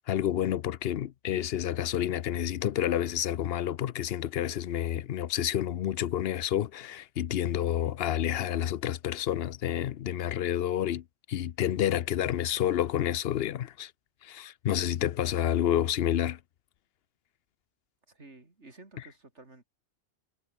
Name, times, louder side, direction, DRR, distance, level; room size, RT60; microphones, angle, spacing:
voice 1, 0.1-13.9 14.2-16.4, left 11 dB, 65° left, 0.8 m, -29 dB
voice 2, 18.1-19.6, right 2 dB, 90° right, 4.1 m, -52 dB
omnidirectional pair, 1.1 m